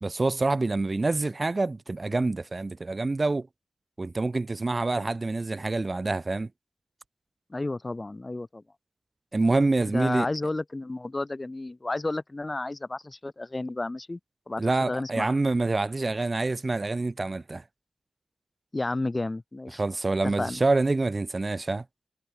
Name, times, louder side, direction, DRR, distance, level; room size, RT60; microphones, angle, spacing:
voice 1, 0.0-3.5 4.0-6.5 9.3-10.3 14.6-17.6 19.7-21.8, right 3 dB, 25° right, 1.3 m, -26 dB
voice 2, 7.5-8.6 9.9-14.2 14.5-14.6 14.9-15.3 18.7-19.8 20.4-20.6, left 2 dB, 20° left, 1.3 m, -31 dB
wide cardioid pair, 180°, 0 cm